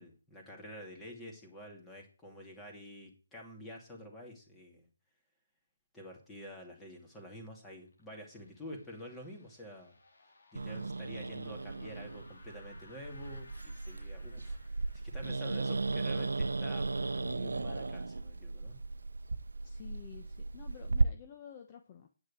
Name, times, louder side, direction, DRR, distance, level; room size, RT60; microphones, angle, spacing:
voice 1, 0.0-4.9 5.9-9.9 10.5-14.6 15.0-18.8, equal, 5° left, 0 dB, 2.6 m, -48 dB
sound 1, 7.3-15.1, left 2 dB, 65° left, 3.5 m, -61 dB
Growling, 10.5-21.0, right 3 dB, 85° right, 0.6 m, -35 dB
voice 2, 19.6-22.1, left 9 dB, 30° left, 6 dB, 1.0 m, -51 dB
9.4 x 6.3 x 8.5 m, 0.38 s
hypercardioid pair, 160°, 0 cm